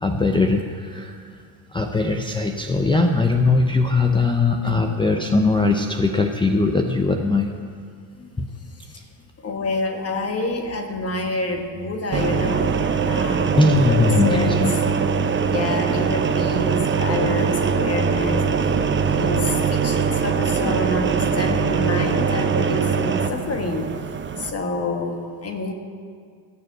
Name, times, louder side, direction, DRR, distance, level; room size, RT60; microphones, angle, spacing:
voice 1, 0.0-1.2 1.7-7.5 8.4-8.5 13.6-14.7, left 3 dB, 10° left, 4 dB, 0.6 m, -20 dB
voice 2, 9.4-14.6 15.4-18.7 19.1-23.9 24.4-25.7, left 2 dB, 30° left, 4 dB, 1.5 m, -28 dB
sound 1, 12.1-24.5, right 6 dB, 25° right, 0.8 m, -22 dB
16.5 x 6.7 x 7.8 m, 2.1 s
supercardioid pair, 105°, 48 cm